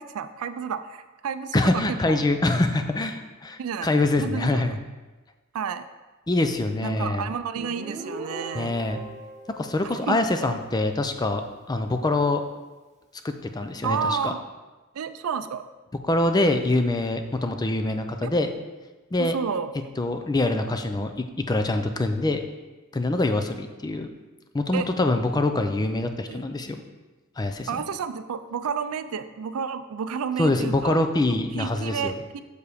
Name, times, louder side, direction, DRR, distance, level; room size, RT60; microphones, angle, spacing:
voice 1, 0.0-2.2 3.6-3.9 4.2-4.8 5.5-5.9 6.8-8.7 9.8-10.5 13.8-14.4 14.9-15.7 18.2-18.3 19.2-19.7 24.7-24.9 26.3-26.5 27.7-31.0 31.6-32.4, right 6 dB, 75° right, 12 dB, 0.4 m, -31 dB
voice 2, 1.5-4.8 6.3-7.3 8.5-9.0 9.6-11.4 11.7-12.4 13.2-14.3 16.0-18.5 19.1-19.3 20.0-22.4 22.9-24.1 24.5-26.8 27.4-27.7 30.4-32.1, left 2 dB, 20° left, 7 dB, 0.4 m, -24 dB
Guitar, 7.6-11.0, right 2 dB, 35° right, 0.7 m, -39 dB
6.7 x 4.7 x 5.0 m, 1.2 s
head